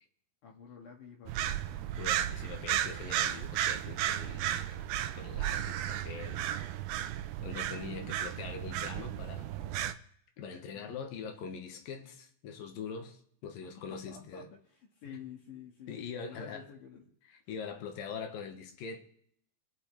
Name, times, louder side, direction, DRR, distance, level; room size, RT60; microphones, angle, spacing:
voice 1, 0.4-1.8 2.1-2.8 10.7-11.1 13.8-15.9 16.3-17.2, left 7 dB, 65° left, 3.1 m, -50 dB
sound 1, 1.3-9.9, right 12 dB, 85° right, 2.5 m, -34 dB
voice 2, 2.0-6.5 6.9-7.1 7.4-9.6 10.4-14.5 15.1-15.2 15.9-16.7 17.2-19.0, left 5 dB, 80° left, 3.0 m, -43 dB
26.0 x 9.8 x 3.3 m
omnidirectional pair, 4.1 m